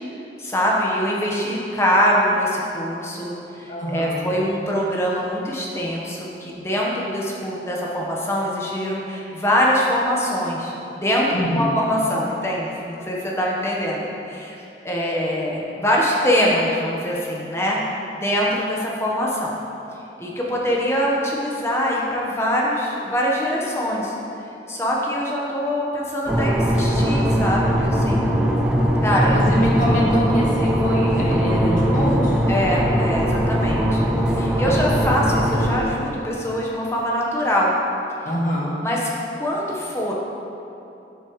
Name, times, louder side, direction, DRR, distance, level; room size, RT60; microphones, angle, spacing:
voice 1, 0.4-10.7 11.0-14.6 14.8-17.8 18.1-19.5 20.2-24.1 24.7-28.4 29.0-29.4 32.5-37.7 38.8-39.1 39.4-40.1, equal, 15° left, -3 dB, 1.0 m, -23 dB
voice 2, 3.7-4.2 11.3-11.7 29.3-32.4 34.6-34.9 38.2-38.8, equal, 45° left, -5 dB, 1.7 m, -24 dB
sound 1, 26.3-35.8, equal, 5° right, 0.6 m, -20 dB
9.6 x 8.5 x 3.1 m, 2.8 s
head